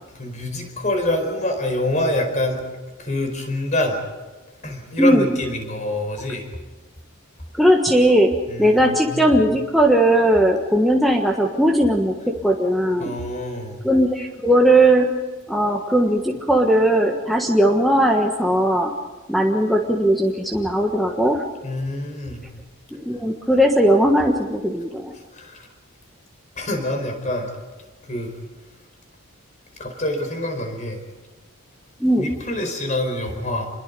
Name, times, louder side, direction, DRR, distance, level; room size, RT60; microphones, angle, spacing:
voice 1, 0.1-2.6 3.0-4.0 4.6-6.5 8.5-9.3 13.0-13.8 21.6-22.5 25.3-25.7 26.6-27.5 28.0-28.3 29.8-31.0 32.2-33.7, left 1 dB, 35° left, 4 dB, 4.8 m, -26 dB
voice 2, 7.5-8.3 8.6-13.1 13.8-15.1 15.5-18.9 19.3-21.4 22.9-25.1 32.0-32.4, right 1 dB, ahead, 1 dB, 1.3 m, -18 dB
27.5 x 21.5 x 5.4 m, 1.3 s
head